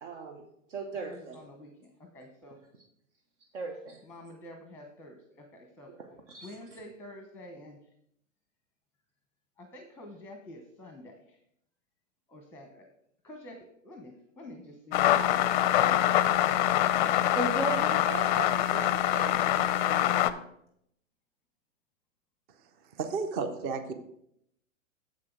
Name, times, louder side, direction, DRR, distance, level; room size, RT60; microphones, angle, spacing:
voice 1, 0.0-1.4 3.5-4.0 5.9-6.8 17.3-20.1, right 3 dB, 65° right, 3 dB, 1.2 m, -38 dB
voice 2, 1.0-2.6 4.0-5.9 6.4-7.8 9.6-11.4 12.3-12.8 13.2-13.6 13.8-16.4, left 1 dB, 5° left, 3 dB, 0.8 m, -48 dB
sound 1, 14.9-20.3, left 12 dB, 40° left, 0.5 m, -25 dB
voice 3, 22.9-23.9, right 5 dB, 25° right, 9 dB, 0.6 m, -32 dB
7.5 x 6.1 x 4.5 m, 0.73 s
hypercardioid pair, 120°, 39 cm